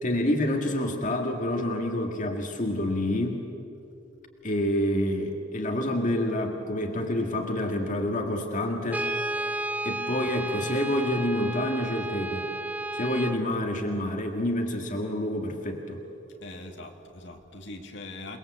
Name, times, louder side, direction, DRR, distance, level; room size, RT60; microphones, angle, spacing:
voice 1, 0.0-3.4 4.4-9.1 9.8-12.5 12.9-16.0, left 1 dB, 45° left, 3 dB, 1.9 m, -28 dB
Brass instrument, 8.9-13.5, right 2 dB, 10° right, 0.6 m, -32 dB
voice 2, 16.4-18.4, left 2 dB, 65° left, 4 dB, 2.3 m, -42 dB
28.5 x 20.5 x 8.1 m, 2.9 s
head